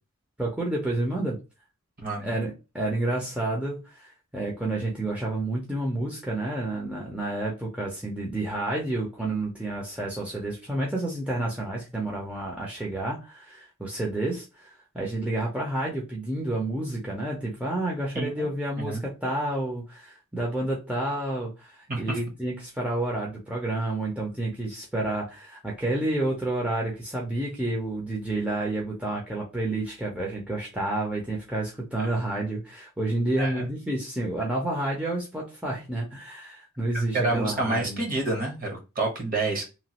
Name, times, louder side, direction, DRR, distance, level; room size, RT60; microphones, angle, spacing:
voice 1, 0.4-1.4 2.2-38.0, right 2 dB, 5° right, 0.5 m, -30 dB
voice 2, 2.0-2.3 18.1-18.5 18.8-19.0 21.9-22.2 32.0-32.1 33.4-33.7 36.9-39.7, right 2 dB, 40° right, 0.9 m, -28 dB
3.0 x 2.3 x 2.8 m
head